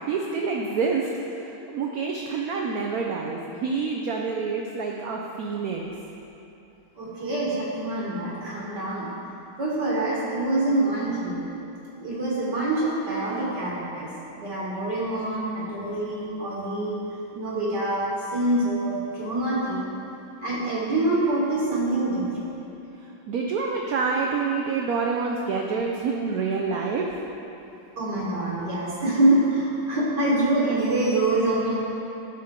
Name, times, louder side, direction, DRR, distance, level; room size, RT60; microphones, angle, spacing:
voice 1, 0.0-5.8 23.0-27.1, right 4 dB, 85° right, 0 dB, 0.8 m, -27 dB
voice 2, 7.0-9.1 9.6-11.4 11.9-17.0 17.3-19.9 20.4-22.6 28.0-31.7, right 2 dB, 60° right, -6 dB, 1.7 m, -25 dB
10.5 x 6.1 x 3.6 m, 2.9 s
omnidirectional pair, 2.2 m